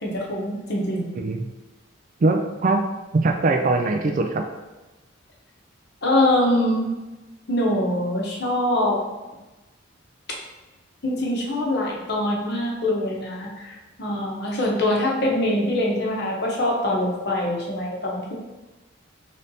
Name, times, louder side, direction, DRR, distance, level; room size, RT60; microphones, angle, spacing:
voice 1, 0.0-1.2 6.0-6.9 7.5-9.0 11.0-18.3, left 1 dB, 50° left, -2 dB, 0.9 m, -24 dB
voice 2, 2.2-2.9 3.2-4.4, right 3 dB, 40° right, 4 dB, 0.3 m, -21 dB
5.3 x 3.4 x 2.7 m, 1.1 s
head